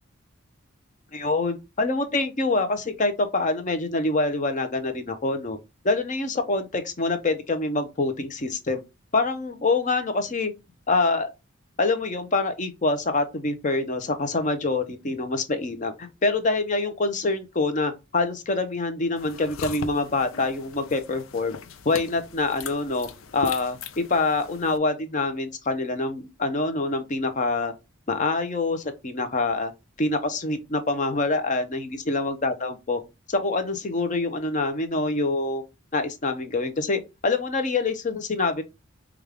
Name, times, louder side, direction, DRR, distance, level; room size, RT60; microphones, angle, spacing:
voice 1, 1.1-5.6 5.8-8.8 9.1-10.5 10.9-11.3 11.8-21.5 21.8-27.7 28.1-29.7 30.0-33.0 33.3-35.6 35.9-38.6, left 3 dB, 35° left, 0.6 m, -25 dB
sound 1, 19.2-24.8, left 5 dB, 75° left, 0.5 m, -39 dB
5.1 x 2.4 x 3.3 m
head